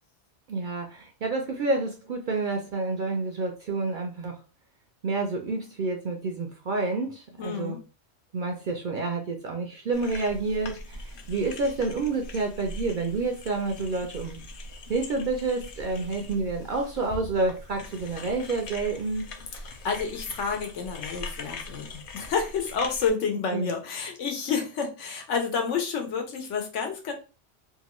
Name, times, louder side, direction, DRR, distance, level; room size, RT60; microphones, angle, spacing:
voice 1, 0.5-4.4 5.0-7.8 8.3-14.4 14.9-19.3 23.5-23.7, right 3 dB, 60° right, 3 dB, 0.5 m, -29 dB
voice 2, 7.4-7.8 19.7-21.9 22.1-27.1, left 5 dB, 75° left, 3 dB, 1.1 m, -29 dB
sound 1, 9.9-23.1, left 2 dB, 60° left, 0.6 m, -41 dB
2.8 x 2.3 x 2.9 m, 0.33 s
omnidirectional pair, 1.2 m